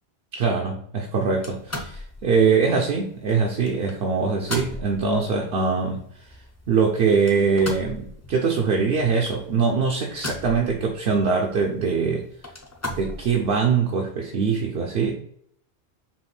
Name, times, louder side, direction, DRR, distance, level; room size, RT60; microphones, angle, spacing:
voice 1, 0.3-6.0 6.7-12.3 12.9-15.2, right 5 dB, 75° right, 0 dB, 0.8 m, -22 dB
sound 1, 1.3-13.6, left 1 dB, 20° left, 0.5 m, -39 dB
5.7 x 2.5 x 3.2 m, 0.67 s
omnidirectional pair, 1.0 m